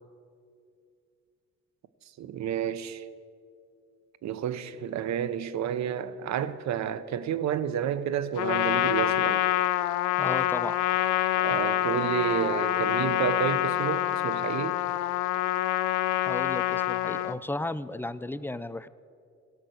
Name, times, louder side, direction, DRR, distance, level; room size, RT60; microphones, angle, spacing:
voice 1, 2.2-3.0 4.2-9.4 11.4-14.8, right 9 dB, 65° right, 0.7 m, -30 dB
Trumpet, 8.4-17.4, left 15 dB, 85° left, 0.5 m, -26 dB
voice 2, 10.2-10.8 16.2-18.9, left 2 dB, 10° left, 0.3 m, -34 dB
16.5 x 5.9 x 7.8 m
cardioid pair, 90°, 30 cm